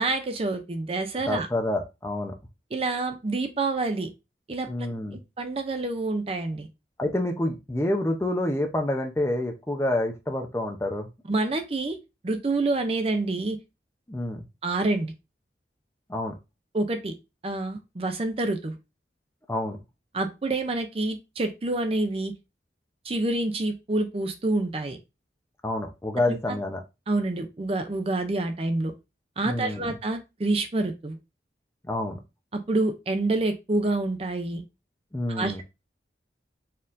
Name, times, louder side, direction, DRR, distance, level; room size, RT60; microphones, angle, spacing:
voice 1, 0.0-1.5 2.7-4.1 4.5-4.7 5.4-6.7 11.3-12.0 12.2-13.6 14.6-15.1 16.7-17.1 17.4-18.7 20.1-22.3 23.0-25.0 26.2-26.6 27.1-28.9 29.4-31.2 32.5-34.6 35.3-35.6, right 2 dB, 30° right, 6 dB, 0.4 m, -27 dB
voice 2, 1.3-2.3 4.7-5.2 7.0-11.1 14.1-14.5 16.1-16.3 19.5-19.8 25.6-26.8 29.4-29.9 31.8-32.2 35.1-35.6, left 1 dB, 15° left, 3 dB, 0.5 m, -28 dB
4.3 x 3.7 x 2.5 m, 0.25 s
head